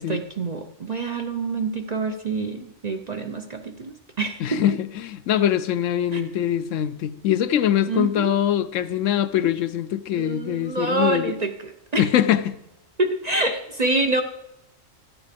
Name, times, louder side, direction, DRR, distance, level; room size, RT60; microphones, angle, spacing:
voice 1, 0.0-4.8 6.1-6.3 7.9-8.4 10.1-12.0 13.0-14.2, right 3 dB, 40° right, 0.7 m, -27 dB
voice 2, 4.4-11.3 12.0-12.6, left 10 dB, 75° left, 0.9 m, -23 dB
13.0 x 9.0 x 5.1 m
omnidirectional pair, 1.4 m